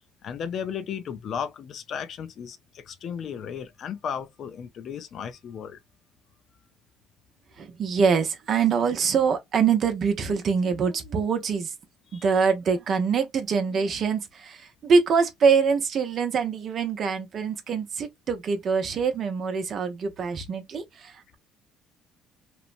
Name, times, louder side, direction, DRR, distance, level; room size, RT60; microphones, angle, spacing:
voice 1, 0.2-5.8 12.1-12.2, left 7 dB, 55° left, 0.5 m, -35 dB
voice 2, 7.6-11.7 12.1-21.4, right 5 dB, 50° right, 0.6 m, -24 dB
3.0 x 2.0 x 2.4 m
supercardioid pair, 90°, 0 cm